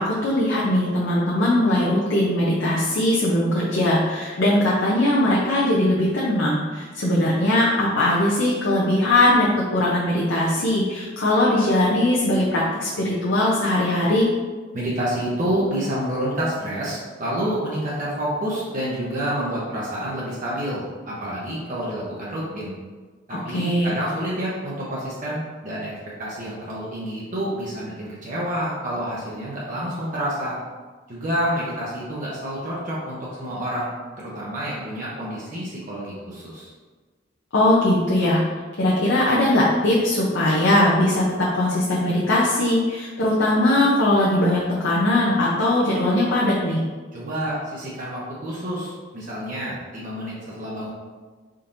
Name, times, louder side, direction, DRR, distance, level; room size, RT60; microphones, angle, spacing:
voice 1, 0.0-14.3 23.3-23.9 37.5-38.4 38.8-46.8, left 1 dB, 70° left, -6 dB, 0.7 m, -20 dB
voice 2, 14.7-22.7 23.3-25.9 26.2-30.6 31.1-36.7 47.1-50.9, equal, 45° right, -6 dB, 0.8 m, -28 dB
4.3 x 3.8 x 2.6 m, 1.4 s
head